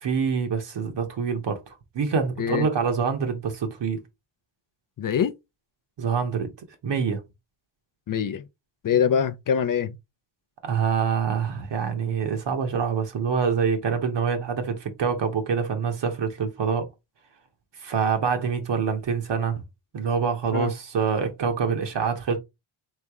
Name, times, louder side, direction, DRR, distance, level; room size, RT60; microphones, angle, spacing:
voice 1, 0.0-1.6 1.9-4.0 6.0-6.5 6.8-7.2 10.6-16.9 17.8-19.6 19.9-22.4, right 6 dB, 55° right, 1.0 m, -25 dB
voice 2, 5.0-5.3 8.1-8.4 8.8-10.0 20.5-20.7, left 8 dB, 45° left, 0.5 m, -24 dB
3.6 x 3.3 x 3.5 m
cardioid pair, 105°, 50 cm